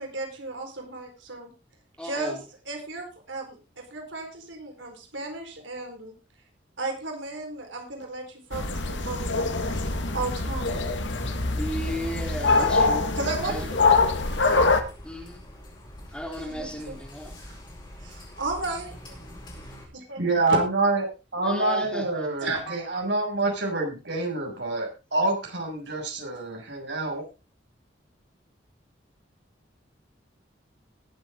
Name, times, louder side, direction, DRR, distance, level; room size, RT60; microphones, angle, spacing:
voice 1, 0.0-1.5 2.0-2.4 2.7-6.1 6.8-9.6 10.1-10.7 13.2-14.4 16.5-17.0 17.4-17.6 18.0-18.9 20.1-20.2 22.4-22.7, right 3 dB, 85° right, 3 dB, 4.4 m, -34 dB
voice 2, 2.0-2.4 11.5-13.1 13.5-13.6 15.0-15.5 16.1-17.3 21.4-22.5, equal, 5° left, 1 dB, 3.4 m, -35 dB
sound 1, 8.5-14.8, left 3 dB, 80° left, 1.9 m, -24 dB
sound 2, 9.5-19.9, equal, 25° left, 4.9 m, -43 dB
voice 3, 20.2-21.0 21.3-27.2, right 2 dB, 70° right, 1 dB, 6.8 m, -27 dB
20.0 x 8.3 x 3.7 m, 0.30 s
head